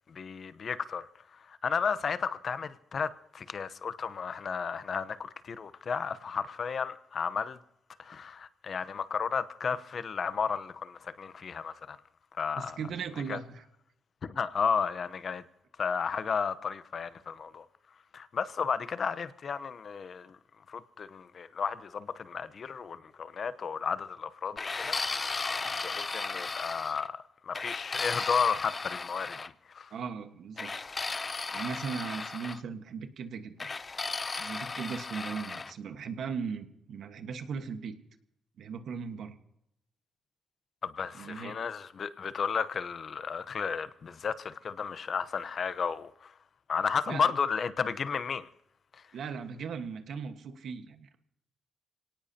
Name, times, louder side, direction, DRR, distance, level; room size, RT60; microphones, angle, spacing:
voice 1, 0.1-1.1 1.5-7.6 8.0-12.0 12.4-12.8 13.3-13.4 14.2-15.4 15.8-17.6 18.1-20.4 20.7-25.4 25.8-29.4 29.7-29.9 40.8-46.3 46.7-48.5, left 6 dB, 55° left, 0.8 m, -33 dB
voice 2, 12.6-13.6 29.9-30.7 31.5-33.7 34.4-37.9 38.6-39.4 41.1-41.6 47.1-47.3 49.1-51.2, right 6 dB, 75° right, 1.4 m, -38 dB
sound 1, 24.6-27.1 27.5-29.5 30.6-32.6 33.6-35.7, left 4 dB, 35° left, 0.5 m, -35 dB
25.5 x 18.0 x 2.9 m
cardioid pair, 80°, 0 cm